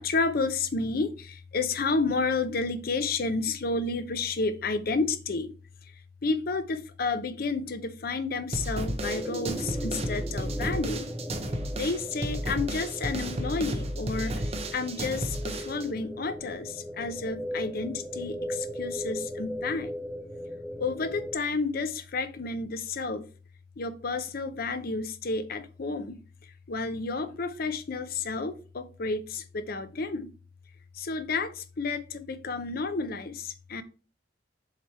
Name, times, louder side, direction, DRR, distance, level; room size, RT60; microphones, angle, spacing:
voice 1, 0.0-5.5 6.2-11.1 11.8-14.4 14.7-19.9 20.8-23.2 23.8-26.2 26.7-30.3 31.0-33.8, left 3 dB, 55° left, 0.6 m, -31 dB
sound 1, 8.5-15.9, right 1 dB, 35° right, 0.8 m, -33 dB
sound 2, 9.0-21.3, equal, ahead, 0.5 m, -38 dB
7.4 x 3.0 x 4.5 m
head